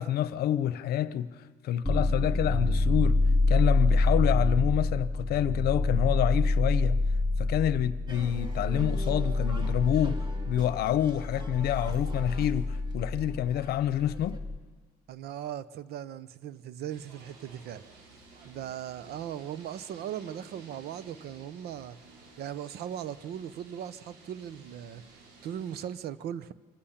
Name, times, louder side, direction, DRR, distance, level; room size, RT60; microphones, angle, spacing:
voice 1, 0.0-1.3 1.6-3.2 3.5-7.0 7.4-14.4, left 11 dB, 70° left, 0.8 m, -28 dB
sound 1, 1.8-14.6, left 2 dB, 5° right, 1.1 m, -27 dB
sound 2, 8.1-14.4, right 2 dB, 25° right, 2.2 m, -45 dB
voice 2, 15.1-17.8 18.4-22.0 22.4-25.0 25.4-26.5, right 10 dB, 70° right, 0.9 m, -38 dB
sound 3, 16.9-25.9, right 3 dB, 90° right, 4.5 m, -54 dB
25.5 x 15.5 x 7.3 m
cardioid pair, 110°, 17 cm